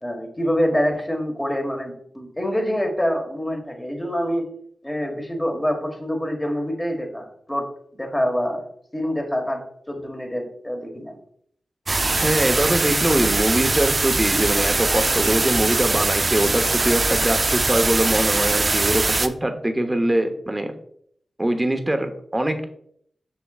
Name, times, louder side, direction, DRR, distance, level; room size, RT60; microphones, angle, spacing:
voice 1, 0.0-4.5 4.8-8.6 8.9-11.2, equal, 15° left, 3 dB, 1.5 m, -26 dB
sound 1, 11.9-19.3, right 3 dB, 45° right, 0.4 m, -22 dB
voice 2, 12.2-20.7 21.4-22.7, right 1 dB, 20° right, 6 dB, 0.9 m, -22 dB
6.9 x 5.7 x 2.4 m, 0.67 s
cardioid pair, 45°, 0 cm